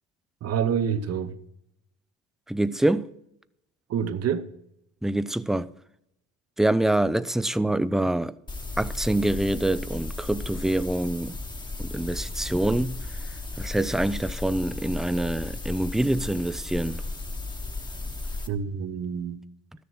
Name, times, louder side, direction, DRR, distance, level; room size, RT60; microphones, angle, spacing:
voice 1, 0.4-1.4 3.9-4.5 18.5-19.4, right 7 dB, 50° right, 1.0 m, -27 dB
voice 2, 2.5-3.1 5.0-5.7 6.6-8.3 8.8-11.4 11.8-13.2 13.6-17.0, right 1 dB, ahead, 0.3 m, -25 dB
sound 1, 8.5-18.5, left 2 dB, 15° left, 1.0 m, -35 dB
13.0 x 6.9 x 6.2 m
cardioid pair, 115°, 31 cm